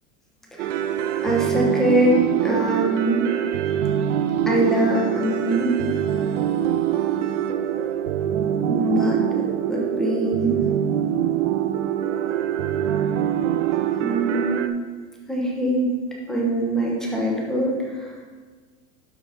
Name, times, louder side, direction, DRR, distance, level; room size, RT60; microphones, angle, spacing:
sound 1, 0.6-14.7, right 10 dB, 85° right, 0.7 m, -24 dB
voice 1, 1.2-3.2 4.5-5.7 8.7-9.4 9.7-10.5 14.0-14.7 15.3-15.9 16.3-18.1, right 1 dB, ahead, -3 dB, 0.9 m, -23 dB
12.0 x 4.0 x 5.0 m, 1.5 s
supercardioid pair, 175°, 35 cm